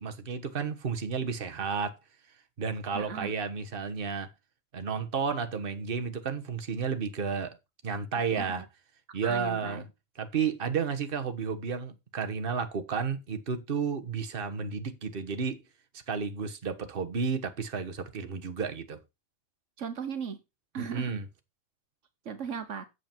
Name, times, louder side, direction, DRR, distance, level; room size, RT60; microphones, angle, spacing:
voice 1, 0.0-2.0 2.6-4.3 4.7-7.6 7.8-8.6 9.1-9.8 10.2-15.6 16.1-19.0 20.8-21.2, right 5 dB, 45° right, 1.4 m, -32 dB
voice 2, 2.9-3.4 8.3-8.6 9.2-9.8 19.8-20.4 20.7-21.1 22.2-22.8, right 6 dB, 75° right, 1.4 m, -37 dB
8.3 x 7.6 x 4.5 m
omnidirectional pair, 1.3 m